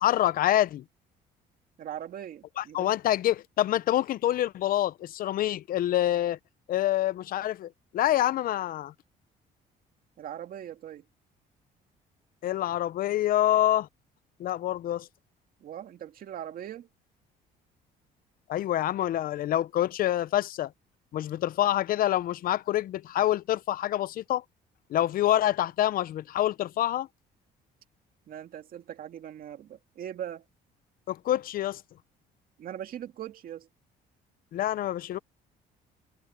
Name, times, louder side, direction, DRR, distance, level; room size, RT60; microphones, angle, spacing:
voice 1, 0.0-0.8 2.6-6.4 6.7-8.9 12.4-13.9 14.4-15.1 18.5-20.7 21.1-24.4 24.9-27.1 31.1-31.8 34.5-35.2, left 13 dB, 60° left, 0.6 m, -26 dB
voice 2, 1.8-2.9 10.2-11.1 15.6-16.9 28.3-30.5 32.6-33.7, right 10 dB, 60° right, 2.3 m, -40 dB
cardioid pair, 110°, 17 cm